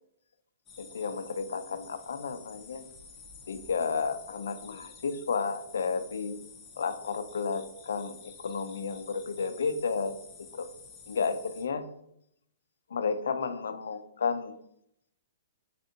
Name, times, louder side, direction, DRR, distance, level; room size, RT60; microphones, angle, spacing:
sound 1, 0.7-11.7, left 5 dB, 15° left, 0.4 m, -51 dB
voice 1, 0.8-2.8 3.5-6.4 6.8-8.1 8.4-10.1 10.5-10.7 11.1-11.9 12.9-14.5, left 5 dB, 90° left, 11 dB, 0.3 m, -32 dB
3.3 x 2.5 x 2.7 m, 0.76 s
hypercardioid pair, 165°, 0 cm